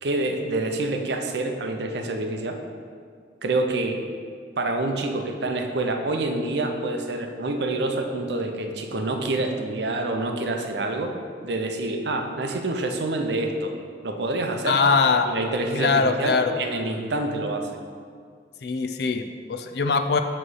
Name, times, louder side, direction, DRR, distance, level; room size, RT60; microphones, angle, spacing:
voice 1, 0.0-2.6 3.4-4.0 4.6-11.1 11.4-13.7 14.0-14.8 15.3-17.7, right 2 dB, 65° right, 4 dB, 0.6 m, -27 dB
voice 2, 14.7-15.3 15.8-16.6 18.6-20.2, left 4 dB, 60° left, 7 dB, 0.4 m, -22 dB
7.6 x 3.1 x 6.3 m, 2.1 s
head